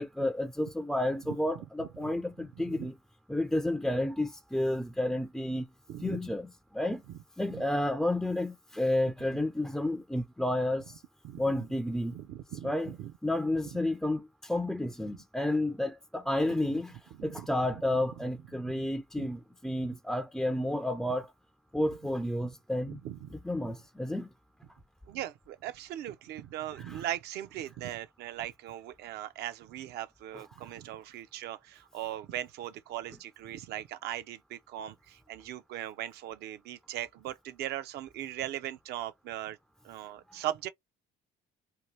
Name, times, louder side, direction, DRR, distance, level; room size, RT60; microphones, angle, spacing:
voice 1, 0.0-2.9 3.3-5.7 6.0-7.0 7.4-11.0 11.4-12.1 12.6-12.9 13.2-21.3 21.7-23.0 23.3-24.3 26.8-27.0, left 1 dB, 5° left, 0.3 m, -31 dB
voice 2, 2.4-2.9 5.9-6.2 7.5-7.6 9.0-9.4 11.2-11.5 12.1-13.1 16.7-16.8 17.2-17.5 18.6-18.9 19.2-19.3 22.4-22.6 22.8-23.3 25.1-39.6 39.8-40.7, right 12 dB, 75° right, 0.5 m, -39 dB
2.8 x 2.3 x 3.1 m
cardioid pair, 110°, 17 cm